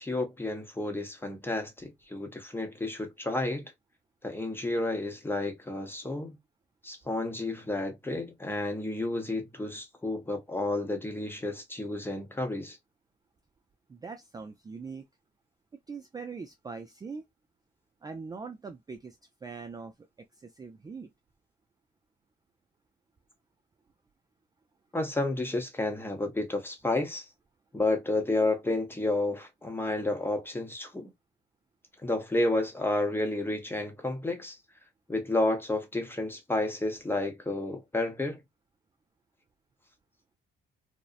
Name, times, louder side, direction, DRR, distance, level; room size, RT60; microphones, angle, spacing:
voice 1, 0.0-3.7 4.2-6.4 6.8-12.8 24.9-27.3 27.7-31.1 32.0-34.6 35.1-38.4, left 2 dB, 10° left, 0.7 m, -31 dB
voice 2, 13.9-15.1 15.7-17.3 18.0-21.1, right 4 dB, 20° right, 0.3 m, -42 dB
2.5 x 2.0 x 2.4 m
cardioid pair, 90°, 20 cm